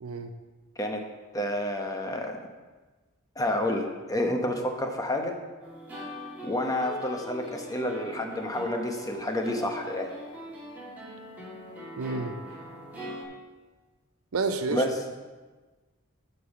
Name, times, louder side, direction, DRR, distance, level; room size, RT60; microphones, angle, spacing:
voice 1, 0.0-0.3 12.0-12.4 14.3-14.9, right 3 dB, 75° right, 8 dB, 0.6 m, -29 dB
voice 2, 1.3-2.4 3.4-5.4 6.4-10.1 14.7-14.9, left 1 dB, 15° left, 3 dB, 0.9 m, -29 dB
sound 1, 5.6-13.2, equal, 10° right, 2.6 m, -42 dB
11.0 x 5.4 x 4.8 m, 1.3 s
head